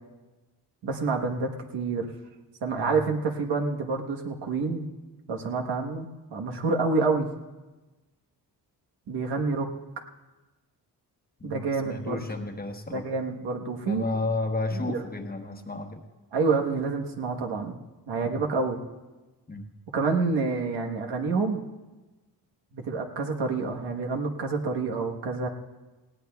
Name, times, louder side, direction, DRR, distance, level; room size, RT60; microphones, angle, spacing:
voice 1, 0.8-2.1 2.6-4.9 5.3-7.3 9.1-9.7 11.4-12.2 12.9-14.0 14.7-15.0 16.3-17.8 18.1-18.8 19.9-21.6 22.7-25.5, right 4 dB, 85° right, 2 dB, 1.3 m, -28 dB
voice 2, 11.4-13.1 13.8-16.0 18.3-18.4 19.5-19.7, left 3 dB, 25° left, 4 dB, 1.1 m, -32 dB
19.0 x 17.0 x 2.3 m, 1.2 s
cardioid pair, 110°, 40 cm